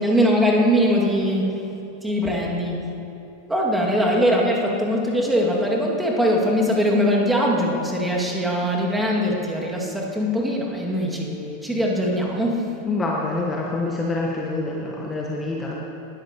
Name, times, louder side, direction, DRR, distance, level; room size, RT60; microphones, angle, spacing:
voice 1, 0.0-1.7 2.0-2.9 3.5-12.8, equal, 5° right, -2 dB, 2.1 m, -21 dB
voice 2, 12.8-15.7, left 2 dB, 15° left, -2 dB, 1.3 m, -26 dB
19.5 x 13.0 x 2.9 m, 3.0 s
figure-of-eight pair, 90°, 0 cm